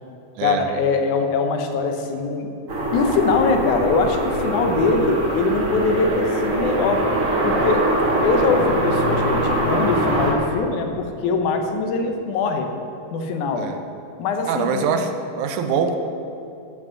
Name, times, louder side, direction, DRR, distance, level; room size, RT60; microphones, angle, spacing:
voice 1, 0.4-2.5 2.9-7.0 7.4-7.9 8.2-12.7 13.1-13.7 14.2-14.9, left 4 dB, 80° left, 4 dB, 2.3 m, -22 dB
sound 1, 2.7-10.3, right 1 dB, 40° right, 1.3 m, -22 dB
voice 2, 14.5-16.0, right 6 dB, 85° right, 6 dB, 2.1 m, -23 dB
13.0 x 5.0 x 6.4 m, 2.8 s
omnidirectional pair, 3.5 m